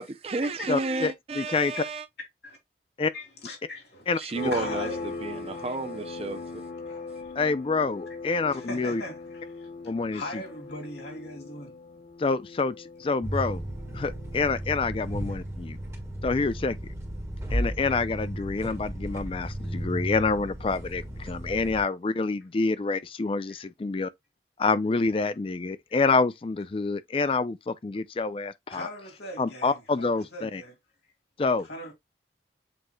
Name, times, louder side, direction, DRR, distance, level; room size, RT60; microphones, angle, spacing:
voice 1, 0.0-2.1 4.2-4.9 5.2-6.6, right 3 dB, 35° right, 0.5 m, -32 dB
voice 2, 0.7-1.7 3.0-3.1 4.1-4.2 7.4-9.0 9.8-10.2 12.2-13.6 13.9-15.8 16.2-16.8 17.5-24.1 24.6-28.9 29.4-30.6 31.4-31.7, left 4 dB, 30° left, 0.3 m, -27 dB
voice 3, 3.1-4.2 4.5-5.0 5.5-5.8 6.9-7.5 8.5-9.7 10.1-11.7 23.5-23.6 28.7-30.8 31.6-31.9, left 1 dB, 75° left, 2.4 m, -40 dB
sound 1, 4.3-14.7, left 3 dB, 50° left, 0.8 m, -40 dB
sound 2, 13.2-21.8, right 1 dB, 15° right, 1.6 m, -34 dB
7.7 x 3.1 x 2.2 m
head